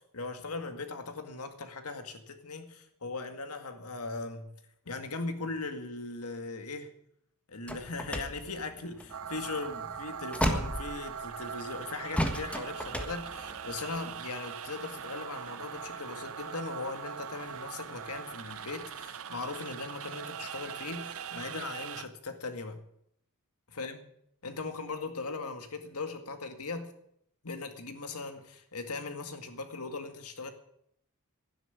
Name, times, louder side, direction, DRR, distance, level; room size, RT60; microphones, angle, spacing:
voice 1, 0.1-4.5 4.9-6.9 7.5-22.8 23.7-24.0 24.4-26.9 27.4-30.5, left 3 dB, 75° left, 2.0 m, -39 dB
sound 1, 7.7-11.5 12.1-14.1, equal, 5° left, 1.5 m, -34 dB
sound 2, 9.1-22.1, right 7 dB, 65° right, 0.8 m, -41 dB
12.0 x 10.5 x 9.7 m
head